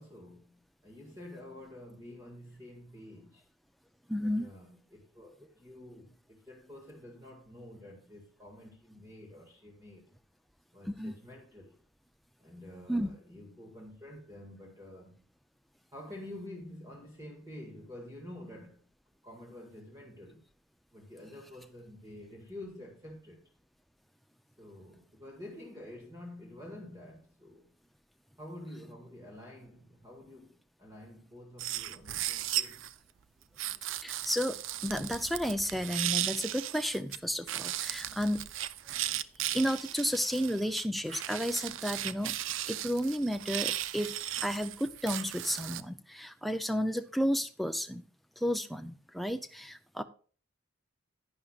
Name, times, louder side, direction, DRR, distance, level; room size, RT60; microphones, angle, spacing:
voice 1, 0.0-3.4 4.2-10.1 10.7-11.8 12.4-15.2 15.9-18.8 19.2-20.5 20.9-23.5 24.6-27.7 28.4-32.9, left 1 dB, 15° right, 1.9 m, -49 dB
voice 2, 4.1-4.5 10.9-11.2 12.9-13.1 34.0-38.4 39.5-42.3 42.7-44.1 44.4-48.0 48.4-50.0, equal, ahead, 0.4 m, -32 dB
sound 1, 31.6-32.9 33.6-37.2 37.5-45.8, right 13 dB, 70° right, 0.4 m, -36 dB
11.0 x 10.0 x 2.4 m
head